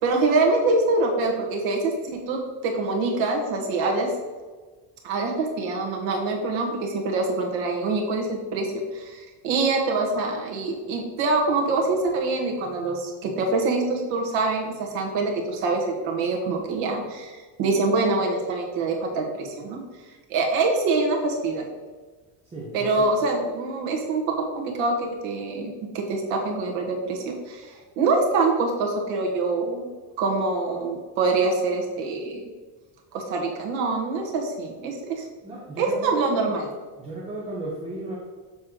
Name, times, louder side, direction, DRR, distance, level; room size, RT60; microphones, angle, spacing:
voice 1, 0.0-4.1 5.0-8.7 8.9-19.8 20.3-21.6 22.7-24.2 24.5-29.9 30.2-32.5 33.1-35.2 35.8-36.7, right 3 dB, 80° right, 1 dB, 1.5 m, -25 dB
voice 2, 22.5-23.1 35.4-36.2 37.0-38.2, right 2 dB, 15° right, -5 dB, 0.8 m, -34 dB
7.2 x 3.3 x 6.1 m, 1.4 s
cardioid pair, 180°, 46 cm